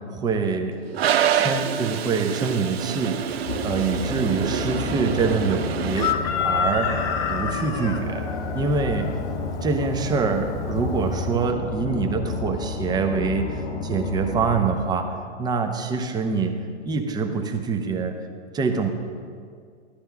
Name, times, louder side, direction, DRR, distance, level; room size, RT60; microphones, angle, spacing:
voice 1, 0.1-0.8 1.3-3.3 3.6-6.1 6.4-6.9 7.3-8.2 8.5-9.1 9.6-15.1 15.4-16.5 16.8-18.2 18.5-18.9, right 5 dB, 10° right, 5 dB, 0.7 m, -25 dB
Toilet flush, 0.9-6.1, right 9 dB, 55° right, 0.8 m, -26 dB
Chicken rooster, 3.2-11.5, left 7 dB, 10° left, 0.3 m, -31 dB
sound 1, 3.5-14.8, left 4 dB, 50° left, 0.9 m, -31 dB
14.0 x 11.5 x 3.4 m, 2.2 s
figure-of-eight pair, 115°, 36 cm